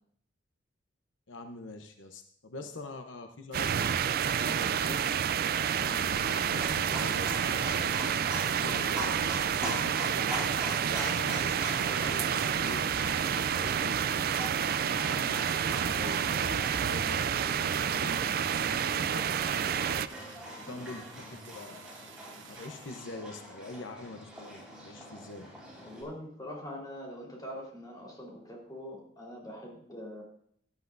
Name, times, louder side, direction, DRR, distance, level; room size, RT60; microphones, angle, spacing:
voice 1, 1.3-5.0 5.7-10.3 10.9-14.3 14.9-19.3 19.5-20.0 20.6-21.8 22.5-25.5, left 2 dB, 80° left, 5 dB, 0.9 m, -44 dB
sound 1, 3.5-20.1, right 8 dB, 50° right, 0.4 m, -29 dB
sound 2, 3.5-22.9, right 7 dB, 70° right, 1.1 m, -53 dB
Livestock farm animals working animals, 6.0-26.0, equal, 5° right, 4.7 m, -43 dB
voice 2, 25.8-30.2, equal, 20° left, -3 dB, 4.0 m, -43 dB
17.0 x 12.0 x 2.6 m, 0.66 s
head